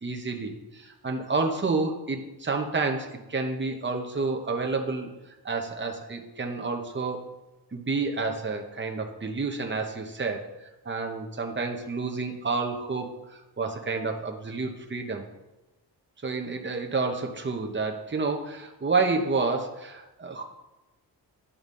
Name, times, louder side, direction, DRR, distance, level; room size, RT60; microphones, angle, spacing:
voice 1, 0.0-5.1 5.4-7.2 7.7-10.4 10.8-15.3 16.2-20.4, right 3 dB, 30° right, 3 dB, 1.0 m, -29 dB
11.5 x 3.9 x 5.4 m, 1.0 s
wide cardioid pair, 145°, 40 cm